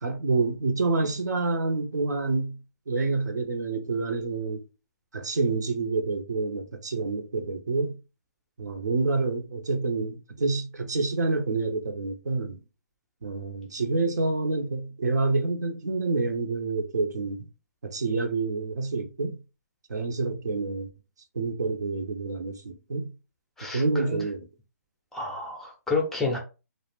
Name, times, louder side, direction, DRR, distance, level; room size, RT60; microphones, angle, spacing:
voice 1, 0.0-2.6 2.9-4.6 5.1-8.0 8.6-12.6 13.2-17.5 17.8-19.4 19.9-20.9 21.3-23.1 23.6-24.5, right 3 dB, 80° right, 0.6 m, -28 dB
voice 2, 23.6-24.2 25.1-26.4, left 3 dB, 5° left, 0.4 m, -30 dB
2.4 x 2.0 x 3.2 m
hypercardioid pair, 150°, 9 cm